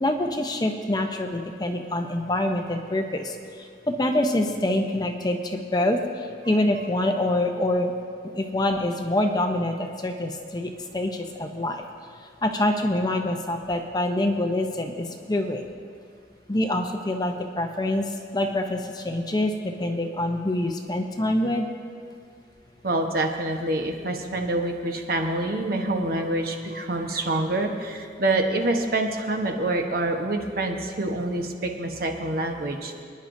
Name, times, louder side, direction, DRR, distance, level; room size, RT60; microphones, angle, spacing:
voice 1, 0.0-7.9 8.3-11.8 12.2-15.7 16.5-21.7, left 1 dB, 20° left, 4 dB, 0.6 m, -26 dB
voice 2, 22.8-32.9, right 2 dB, 50° right, 3 dB, 1.1 m, -26 dB
25.5 x 10.0 x 2.6 m, 2.2 s
head